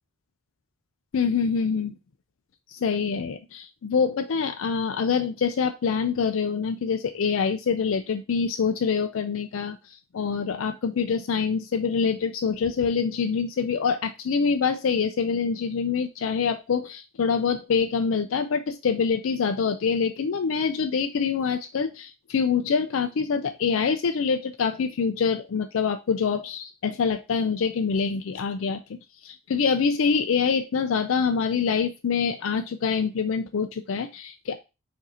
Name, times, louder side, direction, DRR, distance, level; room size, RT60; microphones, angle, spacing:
voice 1, 1.1-1.9 2.7-9.8 10.1-28.8 29.2-34.6, left 5 dB, 70° left, 7 dB, 0.4 m, -25 dB
4.8 x 2.6 x 4.2 m, 0.27 s
head